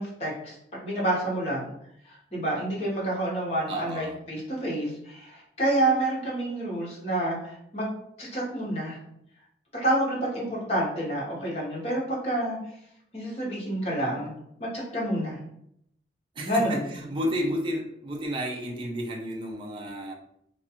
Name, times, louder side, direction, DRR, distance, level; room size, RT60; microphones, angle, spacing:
voice 1, 0.0-1.7 2.0-9.0 9.7-12.6 13.1-14.3 14.6-15.4 16.4-16.9, right 1 dB, 35° left, -5 dB, 0.9 m, -28 dB
voice 2, 3.7-4.2 16.4-20.1, equal, 30° right, 0 dB, 0.4 m, -31 dB
2.4 x 2.3 x 2.8 m, 0.73 s
head